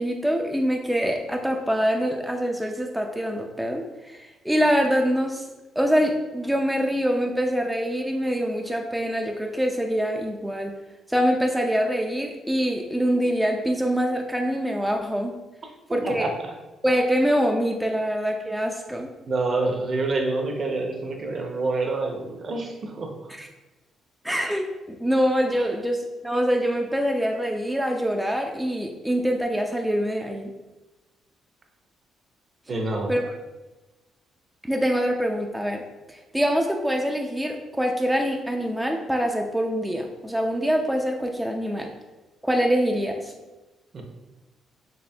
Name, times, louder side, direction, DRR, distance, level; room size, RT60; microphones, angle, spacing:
voice 1, 0.0-5.5 5.8-10.7 11.1-15.4 15.9-16.3 16.8-19.1 23.4-23.5 24.2-30.5 33.1-33.2 34.6-35.8 36.1-41.9 42.4-43.3, equal, 5° right, 1 dB, 0.3 m, -24 dB
voice 2, 15.9-16.5 19.3-23.1 25.6-25.7 32.7-33.1 43.9-44.0, right 3 dB, 45° right, 3 dB, 0.6 m, -27 dB
4.2 x 3.0 x 2.2 m, 1.1 s
cardioid pair, 90°, 0 cm